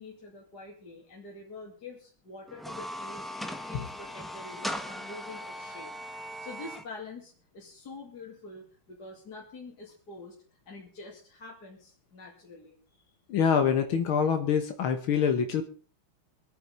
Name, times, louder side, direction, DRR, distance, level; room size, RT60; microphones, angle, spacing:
voice 1, 0.0-5.9 6.2-13.1, left 3 dB, 50° left, -3 dB, 3.1 m, -46 dB
sound 1, 2.5-6.8, equal, ahead, 0.7 m, -39 dB
voice 2, 13.3-15.6, left 7 dB, 80° left, 7 dB, 2.1 m, -25 dB
25.0 x 9.1 x 3.8 m, 0.40 s
omnidirectional pair, 2.2 m